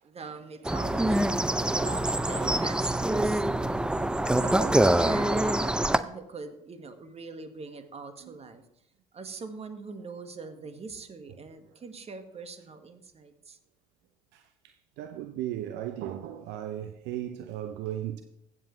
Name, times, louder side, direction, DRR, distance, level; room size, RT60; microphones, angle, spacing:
voice 1, 0.0-3.6 4.4-8.6 9.1-13.6, right 4 dB, 30° right, 1.6 m, -41 dB
sound 1, 0.6-6.0, right 1 dB, 5° right, 0.5 m, -25 dB
voice 2, 14.3-18.2, right 12 dB, 60° right, 0.7 m, -37 dB
15.5 x 7.5 x 3.2 m
hypercardioid pair, 60°, 20 cm